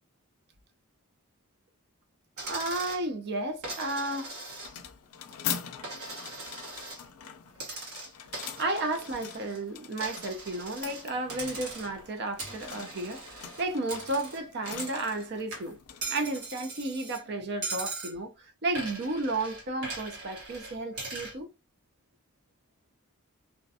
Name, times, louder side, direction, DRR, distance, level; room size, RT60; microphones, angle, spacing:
voice 1, 2.4-4.3 8.6-15.8 16.1-21.5, right 2 dB, 50° right, 0.5 m, -33 dB
Coin (dropping), 2.4-3.0 3.6-4.9 5.3-7.0 7.5-9.6 10.0-11.0 11.3-12.0 12.4-15.2 15.5-17.2 17.6-18.2 18.7-21.4, right 3 dB, 75° right, 1.1 m, -40 dB
sound 1, 4.5-17.6, left 8 dB, 85° left, 0.4 m, -43 dB
2.4 x 2.2 x 2.6 m
head